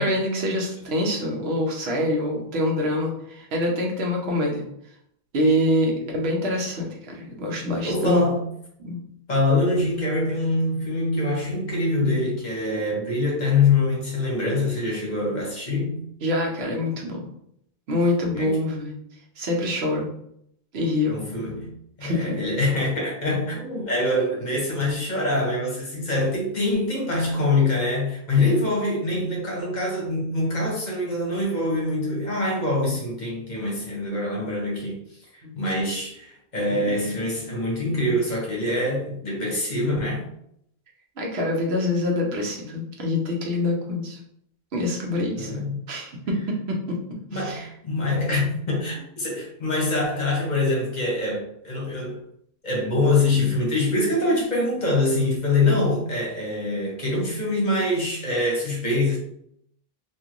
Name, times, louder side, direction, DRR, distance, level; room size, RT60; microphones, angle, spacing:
voice 1, 0.0-4.6 5.3-8.3 8.8-9.0 16.2-17.3 17.9-19.0 19.4-20.1 20.7-21.2 22.0-22.3 35.4-35.6 41.2-44.2 44.7-45.5 45.9-46.8 47.3-47.7, left 1 dB, 75° right, 0 dB, 1.0 m, -25 dB
voice 2, 7.8-8.5 9.3-16.0 18.3-18.6 21.1-21.7 22.0-35.0 35.6-40.2 45.4-45.8 47.3-52.2 52.6-59.2, left 2 dB, 45° left, -2 dB, 0.9 m, -24 dB
3.0 x 2.5 x 2.5 m, 0.73 s
omnidirectional pair, 1.1 m